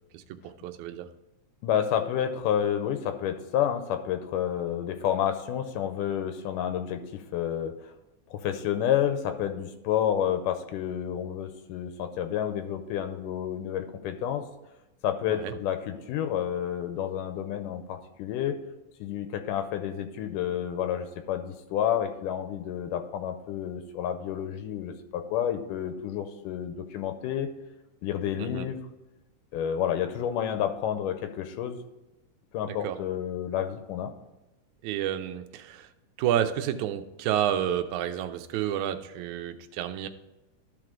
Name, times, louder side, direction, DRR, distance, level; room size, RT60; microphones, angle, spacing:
voice 1, 0.1-1.1 15.3-15.5 28.4-28.7 32.7-33.0 34.8-35.9 36.2-40.1, right 10 dB, 75° right, 8 dB, 1.9 m, -30 dB
voice 2, 1.6-7.7 8.3-14.4 15.0-18.6 19.0-27.5 28.0-28.8 29.5-31.8 32.5-34.1, left 10 dB, 85° left, 8 dB, 2.3 m, -30 dB
12.5 x 4.6 x 3.8 m, 1.0 s
omnidirectional pair, 3.8 m